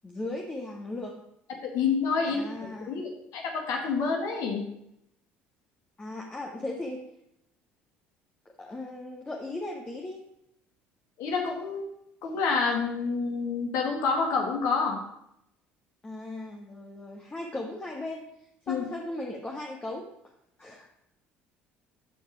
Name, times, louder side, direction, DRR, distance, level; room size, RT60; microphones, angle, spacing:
voice 1, 0.0-1.2 2.2-2.9 6.0-7.1 8.6-10.2 16.0-18.3 18.7-20.1 20.6-20.9, left 2 dB, 20° left, -1 dB, 1.7 m, -37 dB
voice 2, 1.7-2.4 2.9-4.7 11.2-11.8 12.2-15.0 18.7-18.8, left 5 dB, 60° left, 1 dB, 2.0 m, -28 dB
14.0 x 5.0 x 4.8 m, 0.79 s
hypercardioid pair, 60°, 6 cm